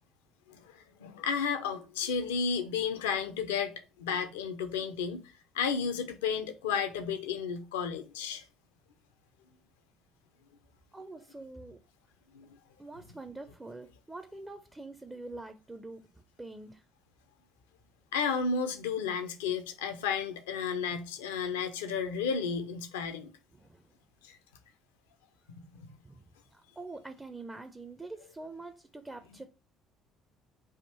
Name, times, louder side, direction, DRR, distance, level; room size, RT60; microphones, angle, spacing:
voice 1, 1.0-3.7 4.0-5.2 5.5-8.4 12.3-12.6 18.1-23.3 24.2-24.4 25.5-25.9, left 6 dB, 75° left, 0.5 m, -32 dB
voice 2, 10.9-11.8 12.8-16.9 23.5-23.9 26.0-29.4, right 2 dB, 15° right, 0.4 m, -45 dB
3.5 x 2.5 x 4.2 m
figure-of-eight pair, 50°, 0 cm